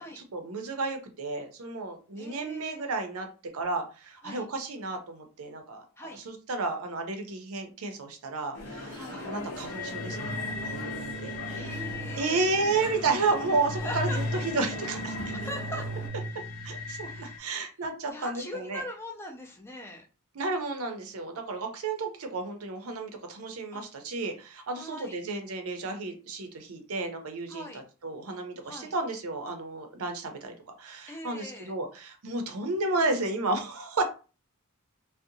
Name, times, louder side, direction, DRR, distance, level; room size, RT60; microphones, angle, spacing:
voice 1, 0.0-3.3 3.5-11.9 12.1-15.4 16.6-18.8 20.3-34.0, right 3 dB, 70° right, 5 dB, 0.6 m, -32 dB
voice 2, 2.2-2.9 4.2-4.5 6.0-6.2 9.0-9.3 11.6-12.5 13.8-14.4 15.3-15.9 17.1-17.4 18.1-20.0 23.7-23.8 24.7-25.2 27.5-27.8 28.6-28.9 31.1-31.7, equal, 10° left, 1 dB, 0.5 m, -41 dB
sound 1, 8.5-16.1, left 1 dB, 70° left, 0.8 m, -40 dB
sound 2, 9.7-17.4, left 1 dB, 90° left, 0.4 m, -36 dB
2.5 x 2.1 x 2.7 m, 0.34 s
head